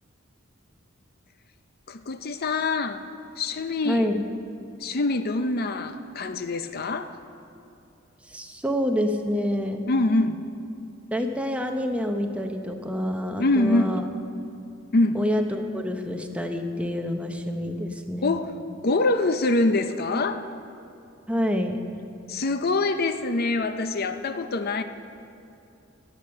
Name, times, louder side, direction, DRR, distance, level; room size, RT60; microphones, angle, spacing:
voice 1, 1.9-3.0 3.4-4.1 4.8-7.1 9.9-10.4 13.4-14.0 14.9-15.2 18.2-18.5 18.8-20.5 22.3-24.8, left 2 dB, 50° left, 9 dB, 0.6 m, -24 dB
voice 2, 3.8-4.2 8.3-9.9 11.1-14.1 15.1-18.3 21.3-21.8, equal, 5° right, 4 dB, 0.8 m, -27 dB
16.5 x 8.7 x 6.6 m, 2.6 s
head